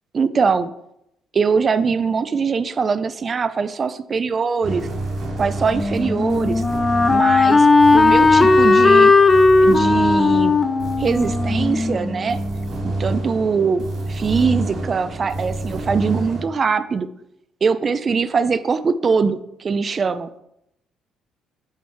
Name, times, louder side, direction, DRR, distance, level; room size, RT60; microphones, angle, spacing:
voice 1, 0.1-0.7 1.3-4.9 5.4-6.6 7.1-7.7 7.9-9.1 9.6-10.5 11.0-12.4 12.8-17.1 17.6-20.3, right 5 dB, 40° right, 13 dB, 0.5 m, -22 dB
sound 1, 4.6-16.4, right 2 dB, 60° right, 2.7 m, -28 dB
Wind instrument woodwind instrument, 5.7-12.6, left 3 dB, 25° left, 0.5 m, -16 dB
8.1 x 4.5 x 3.3 m, 0.79 s
cardioid pair, 85°, 0 cm